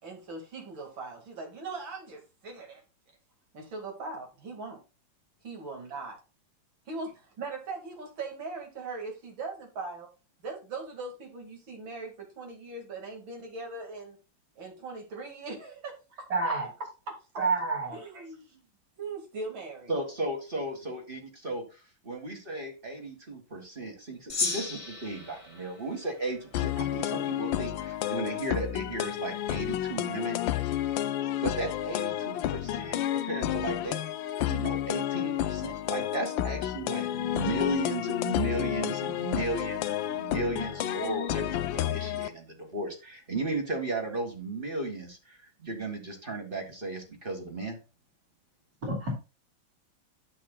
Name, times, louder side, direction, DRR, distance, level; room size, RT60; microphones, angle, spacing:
voice 1, 0.0-2.8 3.5-4.8 5.4-6.2 6.9-10.1 10.4-14.2 14.6-16.3 17.9-18.6 19.0-19.9, right 3 dB, 85° right, 1 dB, 2.7 m, -40 dB
voice 2, 16.3-16.7 17.4-18.0 48.8-49.1, right 3 dB, 60° right, -3 dB, 3.4 m, -28 dB
voice 3, 19.9-30.4 31.4-34.0 34.5-47.8, right 2 dB, 30° right, 2 dB, 1.7 m, -35 dB
Gong, 24.3-26.9, left 4 dB, 25° left, 0.8 m, -35 dB
sound 1, 26.5-42.3, left 12 dB, 90° left, 1.4 m, -31 dB
10.0 x 7.6 x 2.2 m, 0.31 s
omnidirectional pair, 2.1 m